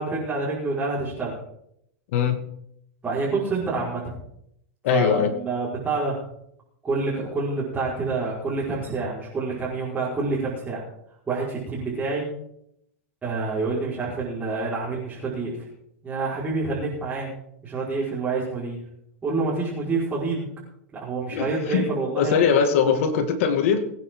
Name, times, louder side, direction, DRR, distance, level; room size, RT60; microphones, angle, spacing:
voice 1, 0.0-1.4 3.0-4.1 4.9-6.2 6.8-10.8 11.3-12.3 13.2-15.7 16.0-17.3 17.6-18.8 19.2-20.5 20.9-22.4, right 3 dB, 15° right, -7 dB, 5.2 m, -27 dB
voice 2, 2.1-2.4 4.8-5.3 21.3-21.9 22.2-23.8, left 7 dB, 65° left, 7 dB, 2.4 m, -21 dB
23.0 x 9.9 x 4.0 m, 0.74 s
hypercardioid pair, 125°, 8 cm